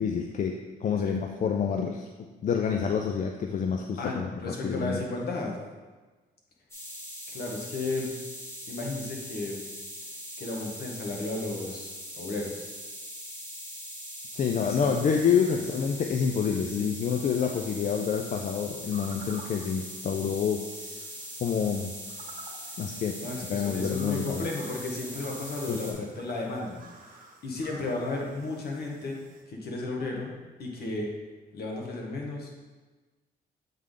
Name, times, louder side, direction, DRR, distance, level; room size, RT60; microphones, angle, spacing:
voice 1, 0.0-2.1 2.4-5.0 14.3-21.1 21.4-21.9 22.8-23.2 23.5-24.5 25.7-26.0, left 7 dB, 45° left, 3 dB, 0.4 m, -28 dB
voice 2, 4.0-5.6 7.3-8.1 8.7-9.6 10.4-12.7 14.6-14.9 16.8-16.9 23.2-29.2 29.5-30.3 30.6-31.1 31.5-32.6, left 2 dB, 65° left, -1 dB, 1.3 m, -34 dB
sound 1, 6.7-25.9, equal, 15° left, 2.1 m, -41 dB
sound 2, 18.8-29.4, right 3 dB, 50° right, 1.0 m, -52 dB
7.8 x 3.6 x 3.8 m, 1.3 s
cardioid pair, 105°, 18 cm